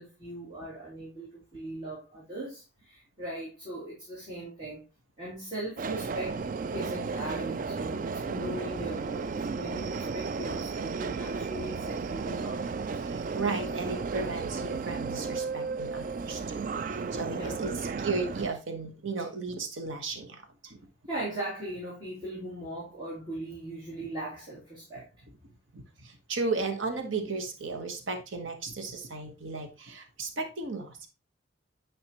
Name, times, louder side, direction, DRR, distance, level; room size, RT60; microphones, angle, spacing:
voice 1, 0.0-4.8 5.2-6.4 6.7-13.0 17.3-17.6 21.1-25.1, right 1 dB, 25° right, 2.8 m, -39 dB
Subway metro underground, 5.8-18.5, right 4 dB, 40° right, 0.3 m, -34 dB
voice 2, 13.0-20.8 25.7-31.1, right 3 dB, 80° right, 1.2 m, -35 dB
9.0 x 5.1 x 2.9 m
head